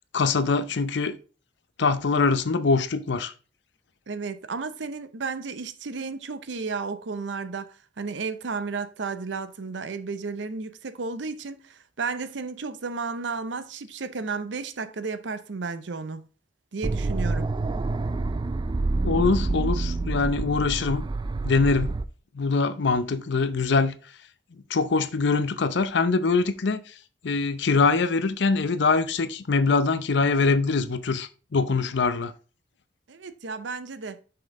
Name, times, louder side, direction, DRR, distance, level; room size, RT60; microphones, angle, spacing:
voice 1, 0.1-1.1 1.8-3.3 19.0-21.1 21.4-21.9 22.3-23.9 24.7-26.8 27.2-32.3, left 4 dB, 70° left, 0.6 m, -23 dB
voice 2, 4.1-16.2 16.7-17.5 33.1-34.2, right 4 dB, 75° right, 0.6 m, -33 dB
sound 1, 16.8-22.1, right 3 dB, 25° right, 0.3 m, -27 dB
5.8 x 5.3 x 3.6 m
head